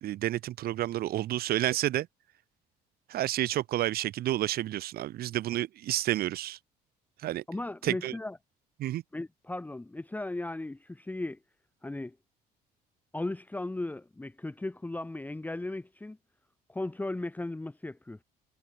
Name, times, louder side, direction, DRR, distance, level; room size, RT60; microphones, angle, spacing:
voice 1, 0.0-2.1 3.1-6.6 7.2-7.4 7.8-8.1 8.8-9.0, right 14 dB, 65° right, 1.0 m, -30 dB
voice 2, 7.5-8.4 9.1-11.4 11.8-12.2 13.1-16.2 16.7-18.2, left 2 dB, 10° left, 1.3 m, -36 dB
cardioid pair, 110°, 17 cm